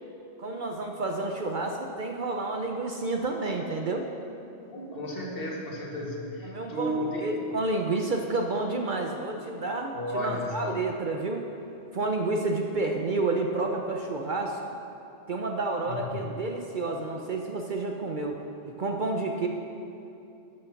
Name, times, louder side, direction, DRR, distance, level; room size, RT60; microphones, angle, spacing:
voice 1, 0.4-4.0 6.4-6.9 7.2-11.4 11.9-14.6 15.3-18.4 18.7-19.5, right 2 dB, 50° right, 2 dB, 0.8 m, -30 dB
voice 2, 4.7-7.3 9.9-10.8 15.8-16.2, equal, 50° left, -2 dB, 1.7 m, -33 dB
12.5 x 6.4 x 5.8 m, 2.8 s
omnidirectional pair, 1.2 m